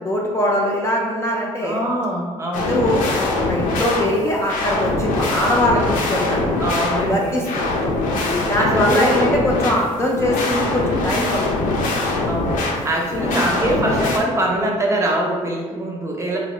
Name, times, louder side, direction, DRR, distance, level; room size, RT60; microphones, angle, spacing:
voice 1, 0.0-1.8 2.6-6.6 7.0-7.7 8.3-11.5 12.0-12.1 13.2-13.3, left 1 dB, 20° left, -2 dB, 0.4 m, -22 dB
voice 2, 1.6-2.8 6.6-7.4 8.6-9.4 12.3-16.4, right 1 dB, 20° right, -2 dB, 0.6 m, -23 dB
sound 1, 2.5-14.2, left 2 dB, 80° left, 0.5 m, -22 dB
2.7 x 2.1 x 3.2 m, 1.5 s
cardioid pair, 90°, 14 cm